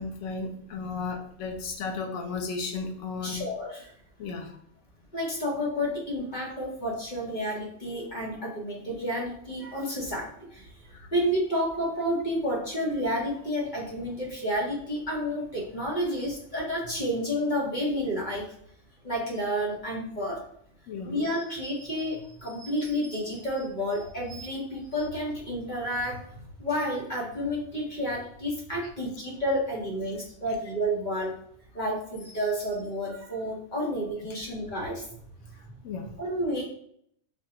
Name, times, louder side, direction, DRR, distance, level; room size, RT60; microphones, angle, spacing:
voice 1, 0.0-3.4 4.2-4.5 10.9-11.1 20.9-21.2 35.8-36.1, left 4 dB, 85° left, 3 dB, 1.0 m, -34 dB
voice 2, 3.2-3.9 5.1-10.6 11.1-18.5 19.0-20.4 21.0-26.2 26.6-31.4 31.7-35.0 36.2-36.6, equal, 40° left, -3 dB, 1.2 m, -30 dB
4.3 x 2.4 x 2.8 m, 0.67 s
omnidirectional pair, 1.3 m